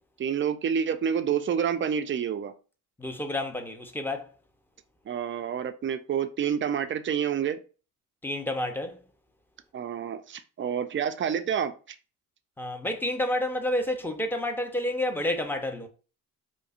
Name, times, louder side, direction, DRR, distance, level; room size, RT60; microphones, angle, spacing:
voice 1, 0.2-2.5 5.1-7.6 9.7-12.0, right 8 dB, 30° right, 0.4 m, -28 dB
voice 2, 3.0-4.3 8.2-9.0 12.6-15.9, left 1 dB, 5° left, 0.7 m, -29 dB
4.8 x 2.1 x 2.4 m
supercardioid pair, 60°, 40 cm